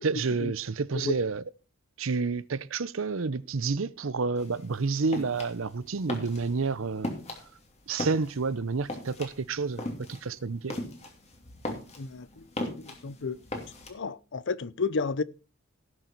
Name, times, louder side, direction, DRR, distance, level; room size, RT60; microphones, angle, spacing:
voice 1, 0.0-1.4 2.0-7.1 7.9-10.8, right 4 dB, 70° right, 0.7 m, -29 dB
sound 1, 4.4-13.9, left 1 dB, 30° left, 2.8 m, -38 dB
voice 2, 12.0-12.4 12.8-13.4 13.9-15.2, left 4 dB, 60° left, 0.7 m, -32 dB
17.5 x 6.6 x 4.6 m
head